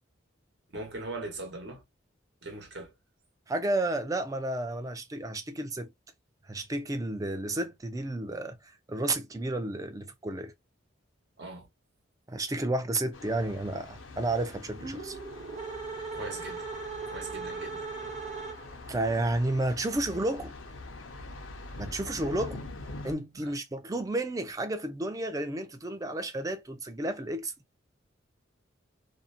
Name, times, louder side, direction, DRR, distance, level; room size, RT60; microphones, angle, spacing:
voice 1, 0.7-1.8 2.4-2.9 11.4-11.7 16.1-16.7 17.1-17.9 23.3-23.5, right 2 dB, 60° right, 1.0 m, -40 dB
voice 2, 3.5-5.9 6.5-8.6 8.9-10.5 12.3-15.2 18.9-20.5 21.8-22.6 23.0-27.5, right 2 dB, 15° right, 0.4 m, -31 dB
Thunder, 13.1-23.1, left 2 dB, 85° left, 0.6 m, -44 dB
sound 1, 14.7-18.9, right 4 dB, 35° right, 0.9 m, -39 dB
2.6 x 2.1 x 2.5 m
head